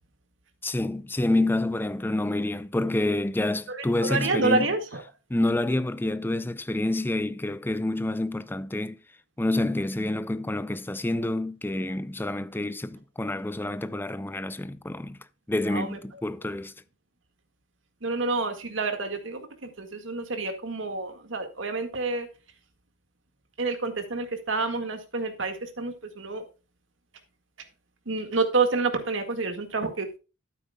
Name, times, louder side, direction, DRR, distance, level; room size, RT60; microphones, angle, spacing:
voice 1, 0.6-4.7 5.3-9.0 9.4-15.2 15.5-16.7, left 1 dB, 10° left, 0.5 m, -28 dB
voice 2, 3.7-5.0 15.7-16.0 18.0-22.3 23.6-26.4 28.1-30.2, right 3 dB, 70° right, 1.9 m, -28 dB
12.0 x 9.0 x 2.3 m
head